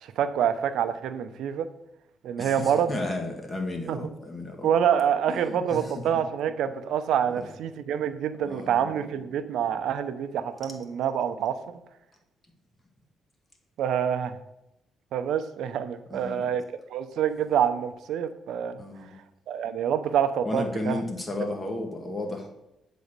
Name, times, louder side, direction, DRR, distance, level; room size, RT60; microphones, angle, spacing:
voice 1, 0.0-1.7 2.2-2.9 3.9-4.0 4.6-11.8 13.8-14.4 15.1-16.6 16.9-18.8 19.5-21.0, right 8 dB, 80° right, 11 dB, 0.6 m, -26 dB
voice 2, 2.4-4.7 5.3-6.0 7.3-7.5 8.4-8.8 16.1-16.4 18.8-19.1 20.4-22.5, left 2 dB, 20° left, 2 dB, 1.8 m, -33 dB
8.0 x 4.2 x 6.7 m, 0.88 s
cardioid pair, 90°, 0 cm